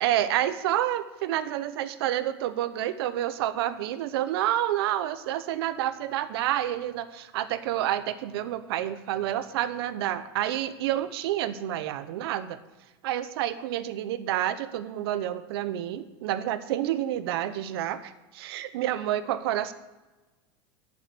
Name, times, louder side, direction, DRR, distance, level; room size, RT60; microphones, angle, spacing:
voice 1, 0.0-12.6 13.0-19.7, right 12 dB, 80° right, 13 dB, 0.8 m, -29 dB
9.6 x 7.3 x 8.1 m, 1.1 s
supercardioid pair, 140°, 13 cm